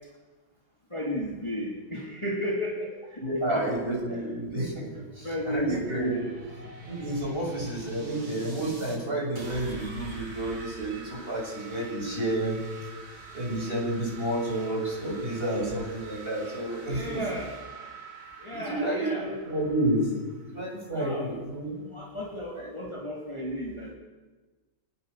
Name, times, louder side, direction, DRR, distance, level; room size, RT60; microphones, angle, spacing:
voice 1, 0.9-4.3 4.9-6.4 16.9-17.6 18.4-19.6 20.9-21.4 21.9-23.9, equal, 15° left, -3 dB, 3.1 m, -34 dB
voice 2, 3.2-6.1 6.8-12.6 13.3-17.2 18.5-20.1 20.4-21.8 22.5-22.7, right 1 dB, 25° right, -2 dB, 7.2 m, -30 dB
sound 1, 4.6-9.0 9.4-20.9, right 3 dB, 80° right, 4.9 m, -45 dB
24.5 x 19.5 x 6.9 m, 1.3 s
omnidirectional pair, 2.2 m